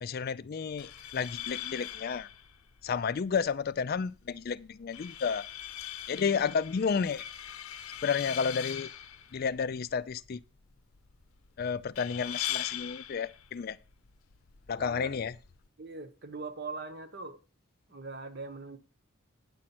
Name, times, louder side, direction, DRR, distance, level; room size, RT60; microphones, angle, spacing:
voice 1, 0.0-2.3 2.8-5.4 6.1-7.2 8.0-8.9 9.3-10.4 11.6-13.8 14.7-15.3, left 6 dB, 45° left, 0.4 m, -31 dB
Metal Pipe Scraped on Concrete in Basement, 0.7-15.7, left 11 dB, 85° left, 0.7 m, -42 dB
voice 2, 14.8-15.2 15.8-17.4 17.9-18.8, right 3 dB, 50° right, 1.1 m, -41 dB
9.4 x 7.5 x 4.3 m
head